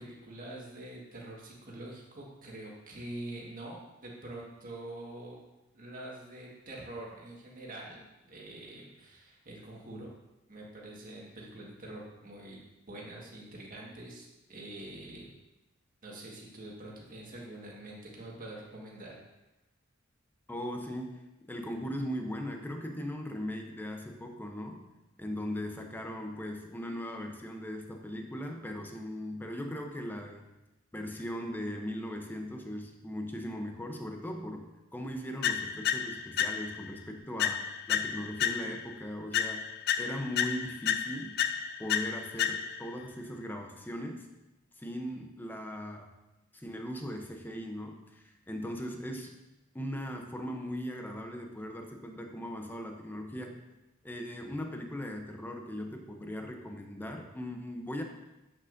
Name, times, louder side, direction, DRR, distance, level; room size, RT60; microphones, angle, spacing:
voice 1, 0.0-5.4 5.7-10.1 10.5-15.3 16.0-19.1, right 1 dB, 45° right, -3 dB, 1.6 m, -45 dB
voice 2, 20.5-24.9 25.2-30.5 30.9-39.7 40.0-41.4 41.8-44.3 44.8-46.1 46.5-49.3 49.7-53.6 54.0-58.0, equal, 10° left, 3 dB, 0.7 m, -39 dB
sound 1, 35.4-36.9 37.4-38.9 39.3-42.9, left 9 dB, 50° left, 0.4 m, -32 dB
8.1 x 6.1 x 2.6 m, 1.0 s
head